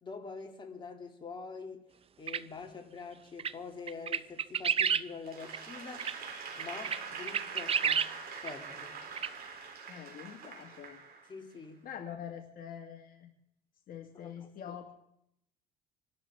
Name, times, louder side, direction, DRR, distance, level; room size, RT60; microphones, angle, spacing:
voice 1, 0.0-1.8 2.2-6.2 6.6-8.1 8.4-9.0 11.3-11.8 14.1-14.8, left 4 dB, 30° left, 2.6 m, -45 dB
sound 1, 2.3-2.4 3.4-3.5 3.9-5.0 5.5-5.6 6.0-6.1 6.6-7.0 7.3-8.1 8.5-8.6 9.2-9.3, right 7 dB, 35° right, 0.5 m, -29 dB
Applause / Crowd, 5.3-11.6, right 5 dB, 65° right, 3.4 m, -44 dB
voice 2, 9.9-11.0 11.8-13.3 13.9-14.9, left 9 dB, 60° left, 1.8 m, -45 dB
27.0 x 12.5 x 3.6 m
cardioid pair, 110°, 17 cm